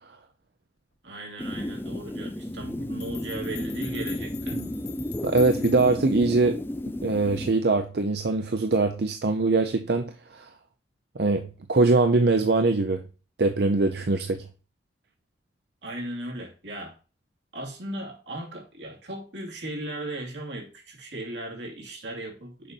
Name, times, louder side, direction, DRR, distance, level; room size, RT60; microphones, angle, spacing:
voice 1, 1.0-4.6 15.8-16.9 17.5-22.7, right 1 dB, 85° right, 2.7 m, -37 dB
sound 1, 1.4-7.5, left 1 dB, 10° left, 0.5 m, -33 dB
sound 2, 3.0-6.1, left 9 dB, 60° left, 1.1 m, -44 dB
voice 2, 5.2-6.6 6.9-10.5 11.2-13.0 13.4-14.4, right 3 dB, 60° right, 0.6 m, -23 dB
6.9 x 5.3 x 4.5 m
head